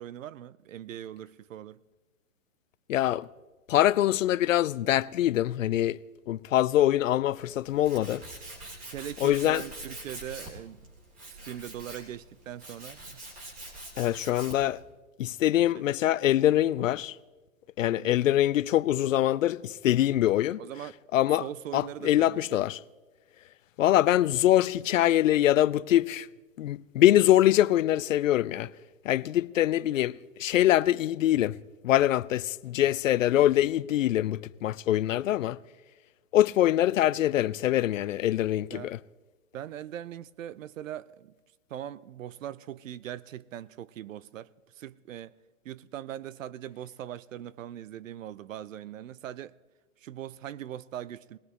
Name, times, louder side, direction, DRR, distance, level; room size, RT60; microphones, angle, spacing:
voice 1, 0.0-1.8 8.9-10.8 11.4-13.2 15.5-15.8 17.9-18.2 20.6-20.9 21.4-22.6 38.7-38.9 39.5-41.3 41.7-45.3 45.6-49.6 50.0-51.4, right 11 dB, 65° right, 0.6 m, -41 dB
voice 2, 2.9-3.3 3.7-6.0 6.3-8.2 9.2-9.6 14.0-14.8 15.2-17.2 17.8-20.6 21.1-21.4 21.7-22.8 23.8-26.3 26.6-28.7 29.0-31.5 31.8-35.6 36.3-39.0, left 13 dB, 65° left, 0.5 m, -24 dB
Tools, 7.3-14.8, right 1 dB, 20° right, 3.6 m, -44 dB
20.5 x 17.5 x 3.2 m
hypercardioid pair, 135°, 42 cm